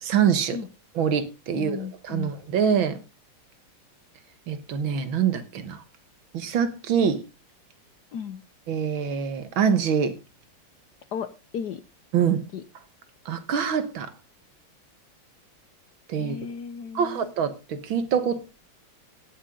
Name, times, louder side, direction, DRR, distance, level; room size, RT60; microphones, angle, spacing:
voice 1, 0.0-0.6 1.0-3.0 4.5-5.8 6.3-7.2 8.7-10.1 12.1-12.4 13.3-14.1 16.1-16.4 16.9-18.4, right 7 dB, 70° right, 2.0 m, -25 dB
voice 2, 1.5-2.3 8.1-8.4 11.1-11.8 12.5-12.6 16.2-17.3, left 7 dB, 65° left, 1.0 m, -35 dB
17.0 x 7.8 x 3.7 m
omnidirectional pair, 2.4 m